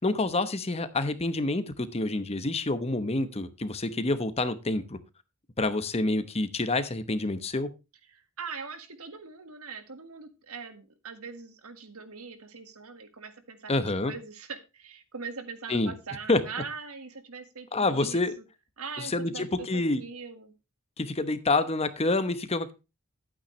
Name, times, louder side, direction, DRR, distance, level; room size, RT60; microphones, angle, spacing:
voice 1, 0.0-5.0 5.6-7.7 13.7-14.1 15.7-15.9 16.3-16.4 17.7-18.3 19.0-20.0 21.0-22.7, left 2 dB, 30° left, 12 dB, 0.9 m, -27 dB
voice 2, 8.1-13.7 14.0-18.4 18.8-20.5, right 5 dB, 75° right, 9 dB, 1.8 m, -41 dB
11.5 x 8.9 x 3.2 m, 0.27 s
head